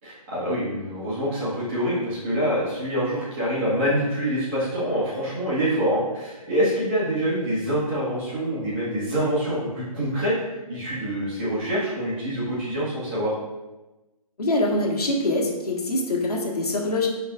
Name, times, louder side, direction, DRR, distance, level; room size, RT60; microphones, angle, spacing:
voice 1, 0.0-10.3 10.7-13.3, equal, 20° right, -9 dB, 1.8 m, -25 dB
voice 2, 14.4-17.1, left 2 dB, 80° left, -1 dB, 1.6 m, -24 dB
11.0 x 4.0 x 2.5 m, 1.1 s
hypercardioid pair, 170°, 20 cm